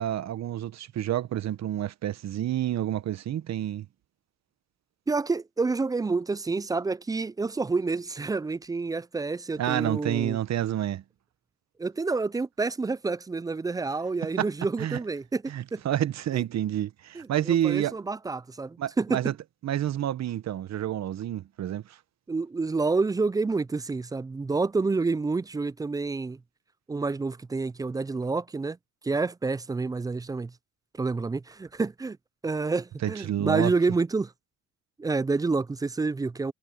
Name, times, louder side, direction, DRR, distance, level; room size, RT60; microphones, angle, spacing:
voice 1, 0.0-3.9 9.6-11.0 14.4-14.5 14.8-15.0 15.5-17.9 18.8-19.3 19.6-22.0 33.0-33.7, right 11 dB, 60° right, 1.0 m, -29 dB
voice 2, 5.1-10.4 11.8-15.4 15.7-15.8 16.3-16.4 17.1-19.2 22.3-26.4 26.9-28.8 29.0-30.5 31.0-32.2 32.4-34.3 35.0-36.5, right 3 dB, 15° right, 0.3 m, -28 dB
cardioid pair, 90°, 30 cm